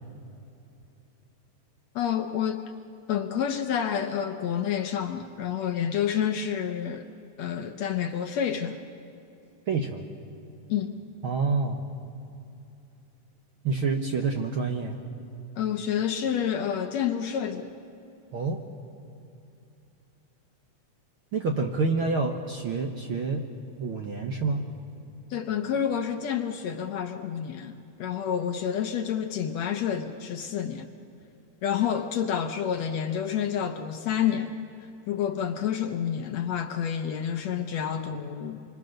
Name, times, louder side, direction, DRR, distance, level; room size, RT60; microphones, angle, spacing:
voice 1, 2.0-2.6 3.1-7.1 7.4-8.8 10.7-11.0 15.6-17.7 25.3-30.9 31.6-34.6 35.1-38.6, left 8 dB, 70° left, 6 dB, 1.8 m, -29 dB
voice 2, 9.7-10.1 11.2-11.9 13.6-15.0 18.3-18.6 21.3-23.5 23.8-24.7, right 4 dB, 60° right, 2 dB, 1.5 m, -28 dB
27.0 x 24.5 x 6.5 m, 2.8 s
omnidirectional pair, 3.7 m